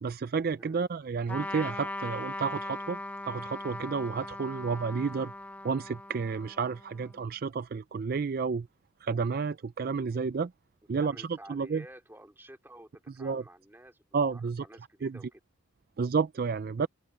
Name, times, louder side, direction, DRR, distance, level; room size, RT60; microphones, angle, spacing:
voice 1, 0.0-3.0 3.3-5.3 5.6-8.7 9.0-10.5 10.9-11.8 13.2-13.4 14.1-14.6 15.0-15.2 16.0-16.9, right 5 dB, 45° right, 0.4 m, -31 dB
Trumpet, 1.3-7.1, left 2 dB, 10° left, 1.2 m, -39 dB
voice 2, 10.9-14.0 14.3-15.4 16.8-16.9, right 1 dB, 10° right, 2.5 m, -51 dB
head